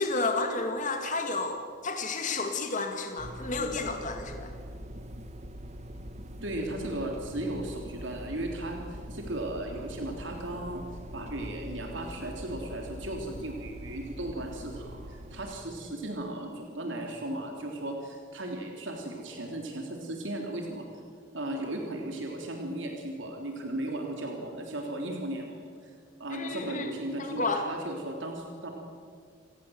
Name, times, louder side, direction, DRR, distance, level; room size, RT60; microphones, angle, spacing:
voice 1, 0.0-4.5 26.3-26.9 27.2-27.6, left 3 dB, 40° left, 4 dB, 2.1 m, -31 dB
sound 1, 3.2-15.6, equal, 35° right, 1.3 m, -43 dB
voice 2, 6.4-10.8 11.1-20.9 21.3-25.9 26.2-28.7, right 1 dB, 70° right, 1 dB, 3.2 m, -36 dB
28.5 x 18.5 x 7.9 m, 2.2 s
head